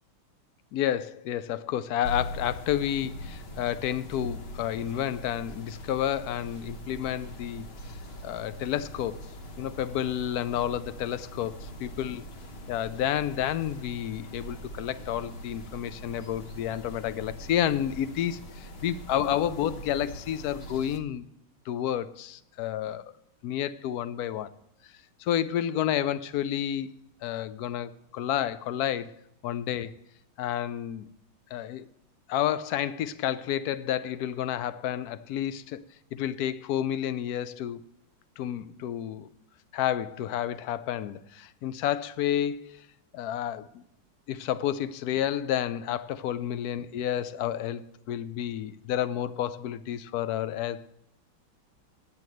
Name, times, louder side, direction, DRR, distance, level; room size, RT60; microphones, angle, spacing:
voice 1, 0.7-7.7 8.2-9.2 9.6-12.2 12.7-21.2 21.7-23.1 23.4-24.5 25.2-26.9 27.2-29.1 29.4-29.9 30.4-31.1 31.5-31.9 32.3-35.8 36.1-37.8 38.4-39.3 39.7-42.9 43.1-43.8 44.3-50.9, left 11 dB, 70° left, 0.9 m, -30 dB
sound 1, 2.0-21.0, equal, 40° left, 1.1 m, -42 dB
10.5 x 7.8 x 7.6 m
omnidirectional pair, 2.2 m